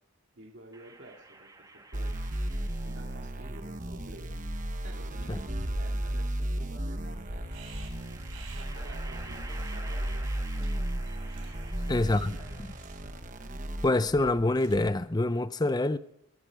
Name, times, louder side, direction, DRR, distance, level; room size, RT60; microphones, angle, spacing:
voice 1, 0.4-1.5 1.9-2.1 2.8-4.4 4.8-7.5 8.5-10.3 11.6-12.6, right 2 dB, 60° right, 2.5 m, -50 dB
sound 1, 0.7-3.4 4.5-5.5 7.1-13.1, right 3 dB, 20° right, 2.2 m, -50 dB
sound 2, 1.9-13.8, right 1 dB, 40° right, 1.1 m, -35 dB
sound 3, 3.8-14.9, equal, 85° right, 3.9 m, -43 dB
voice 2, 11.9-12.4 13.8-16.0, left 2 dB, 20° left, 0.5 m, -26 dB
22.5 x 9.9 x 4.9 m
head